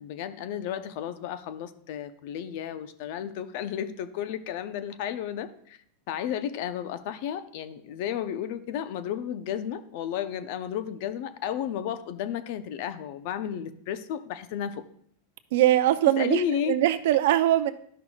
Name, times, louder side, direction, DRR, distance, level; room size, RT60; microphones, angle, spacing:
voice 1, 0.0-5.8 6.1-14.8 16.2-16.7, left 9 dB, 60° left, 12 dB, 0.6 m, -33 dB
voice 2, 15.5-17.7, right 13 dB, 70° right, 12 dB, 0.5 m, -22 dB
12.0 x 5.8 x 2.4 m, 0.63 s
hypercardioid pair, 120°, 0 cm